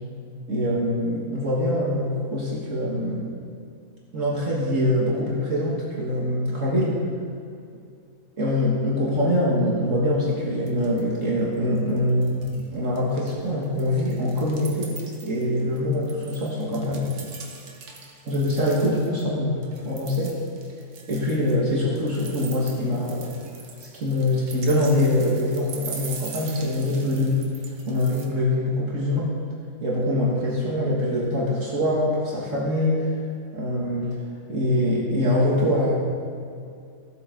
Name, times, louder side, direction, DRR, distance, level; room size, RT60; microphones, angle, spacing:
voice 1, 0.5-3.3 4.1-7.0 8.4-15.0 15.2-17.1 18.3-20.4 21.1-23.4 23.9-27.5 27.9-29.4 29.8-33.1 33.5-34.2 34.5-35.9, left 1 dB, 60° right, -5 dB, 2.0 m, -24 dB
sound 1, 10.3-10.4 10.7-11.2 11.5-12.7 13.0-19.2 19.6-28.3, right 5 dB, 80° right, 1.6 m, -42 dB
15.5 x 7.9 x 4.0 m, 2.4 s
omnidirectional pair, 1.5 m